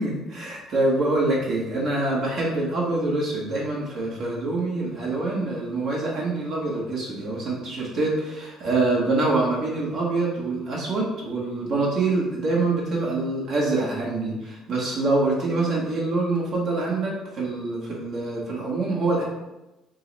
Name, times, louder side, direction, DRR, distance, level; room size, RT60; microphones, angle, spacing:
voice 1, 0.0-19.2, right 2 dB, 65° right, -4 dB, 1.1 m, -25 dB
5.3 x 2.0 x 4.0 m, 0.97 s
cardioid pair, 95°, 0 cm